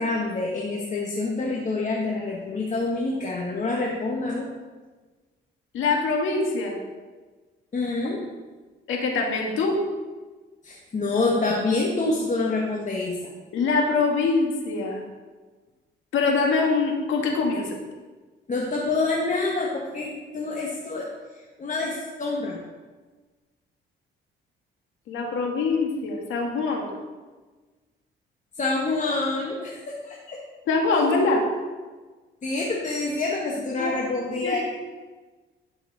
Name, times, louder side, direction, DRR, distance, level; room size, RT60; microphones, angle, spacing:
voice 1, 0.0-4.5 7.7-8.2 10.6-13.1 18.5-21.1 21.6-22.6 28.6-30.4 32.4-34.6, left 3 dB, 40° left, -3 dB, 1.5 m, -27 dB
voice 2, 5.7-6.8 8.9-9.8 13.5-15.0 16.1-17.7 25.1-26.9 30.7-31.4 33.8-34.0 34.4-34.6, left 4 dB, 85° left, 0 dB, 1.9 m, -23 dB
12.5 x 5.9 x 4.1 m, 1.3 s
cardioid pair, 90°, 20 cm